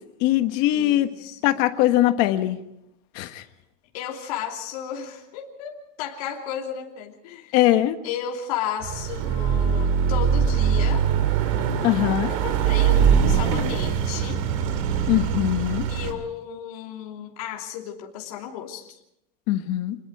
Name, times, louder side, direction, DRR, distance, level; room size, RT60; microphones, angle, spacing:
voice 1, 0.2-1.1 1.4-2.6 3.1-3.4 7.5-8.0 11.8-12.3 15.1-15.8 19.5-20.0, left 14 dB, 40° left, 8 dB, 1.4 m, -21 dB
voice 2, 0.7-1.6 3.9-7.5 8.0-11.1 12.3-14.4 15.9-19.0, left 9 dB, 60° left, 0 dB, 3.2 m, -34 dB
Car passing by / Accelerating revving vroom, 8.8-16.1, right 7 dB, 55° right, 2.6 m, -22 dB
27.0 x 21.0 x 4.8 m, 0.79 s
supercardioid pair, 180°, 21 cm